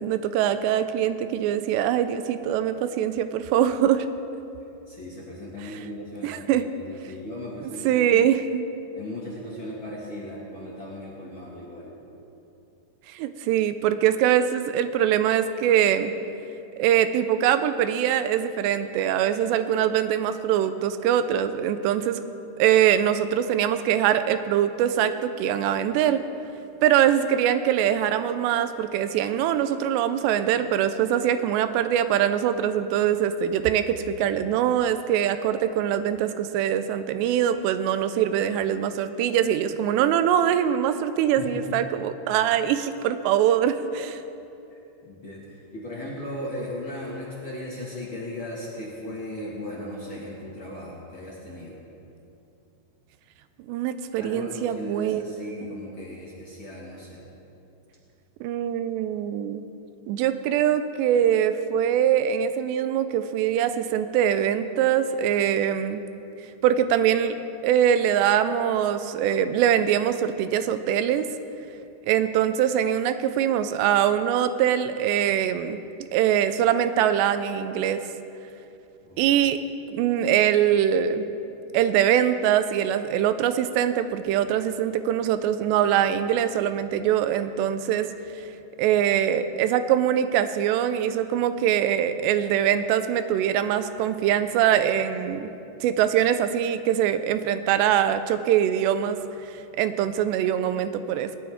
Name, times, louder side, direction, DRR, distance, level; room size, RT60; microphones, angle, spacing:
voice 1, 0.0-4.1 5.6-5.7 6.2-6.7 7.6-8.7 13.1-16.1 16.8-22.2 22.6-26.2 26.8-44.2 53.7-55.3 58.4-59.6 60.1-66.0 66.6-67.4 67.6-71.3 72.1-75.8 76.1-78.0 79.2-79.6 79.9-81.3 81.7-88.1 88.8-95.5 95.8-99.2 99.8-101.3, right 10 dB, 90° right, 11 dB, 2.8 m, -23 dB
voice 2, 4.9-8.2 8.9-11.9 41.3-41.7 45.0-51.8 54.2-57.2 79.0-79.3, left 1 dB, 50° left, -6 dB, 1.6 m, -37 dB
19.0 x 12.5 x 3.6 m, 2.8 s
omnidirectional pair, 4.9 m